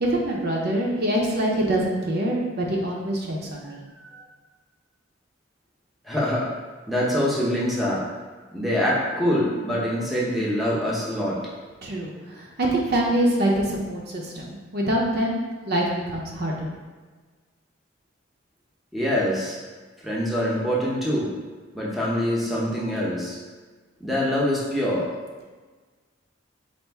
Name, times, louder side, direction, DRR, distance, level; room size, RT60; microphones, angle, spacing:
voice 1, 0.0-3.8 11.8-15.4 15.7-16.7, right 1 dB, 55° right, -2 dB, 0.6 m, -25 dB
voice 2, 3.6-4.2 6.0-6.5 6.9-8.0 8.5-11.4 18.9-19.6 20.0-21.3 21.7-23.4 24.0-25.1, equal, ahead, -7 dB, 0.7 m, -25 dB
4.3 x 2.5 x 3.4 m, 1.4 s
head